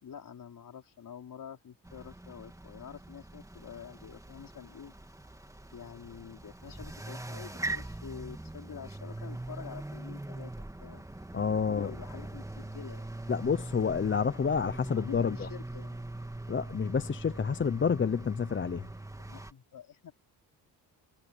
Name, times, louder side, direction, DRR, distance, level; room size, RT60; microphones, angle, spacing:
voice 1, 0.0-4.9 5.7-10.5 10.8-11.0 11.7-13.4 14.9-16.1 19.2-20.1, left 8 dB, 55° left, 3.8 m, -47 dB
sound 1, 1.8-19.5, right 2 dB, 10° right, 2.5 m, -42 dB
voice 2, 11.3-11.9 13.3-15.5 16.5-18.9, left 6 dB, 30° left, 0.9 m, -29 dB
cardioid pair, 90°, 40 cm